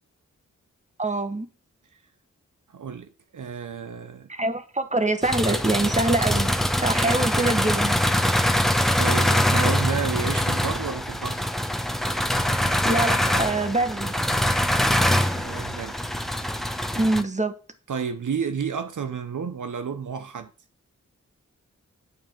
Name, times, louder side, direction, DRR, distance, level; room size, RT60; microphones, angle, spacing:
voice 1, 1.0-1.5 4.3-8.0 12.8-14.1 16.9-17.5, right 2 dB, 20° right, 1.7 m, -25 dB
voice 2, 2.7-4.3 9.0-11.4 15.3-16.0 17.9-20.5, right 6 dB, 70° right, 1.0 m, -31 dB
sound 1, 5.2-17.2, left 1 dB, ahead, 1.3 m, -23 dB
9.7 x 4.9 x 7.7 m
cardioid pair, 50°, 32 cm